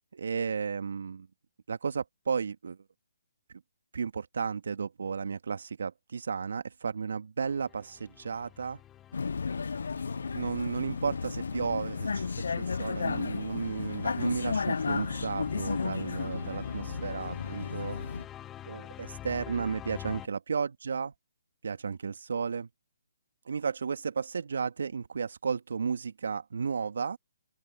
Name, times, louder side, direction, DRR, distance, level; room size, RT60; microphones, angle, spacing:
voice 1, 0.2-1.3 1.7-2.8 3.9-8.8 10.3-18.0 18.6-21.1 21.6-22.7 23.5-27.2, right 5 dB, 70° right, 2.4 m, -33 dB
sound 1, 7.4-20.3, left 12 dB, 15° left, 1.5 m, -47 dB
Vehicle, 9.1-18.3, left 5 dB, 75° left, 0.7 m, -33 dB
open air
hypercardioid pair, 145°, 0 cm